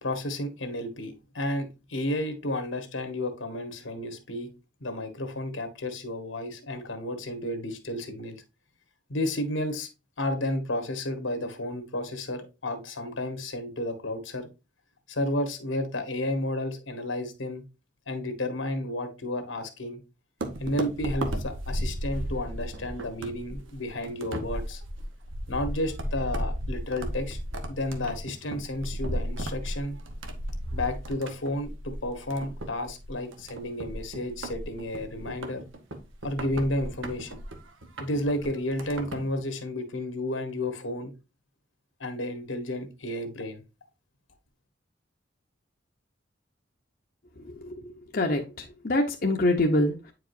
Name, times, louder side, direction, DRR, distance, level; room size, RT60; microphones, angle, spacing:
voice 1, 0.0-4.5 4.8-8.4 9.1-9.9 10.2-14.5 15.1-17.6 18.1-20.0 20.6-24.8 25.5-27.4 27.7-30.0 30.7-35.6 36.2-37.4 38.0-41.1 42.0-43.6, left 1 dB, 80° left, 1.3 m, -32 dB
sound 1, 20.4-39.4, right 1 dB, 80° right, 1.0 m, -35 dB
voice 2, 47.4-50.1, left 1 dB, 50° left, 0.8 m, -26 dB
8.8 x 4.8 x 2.6 m
head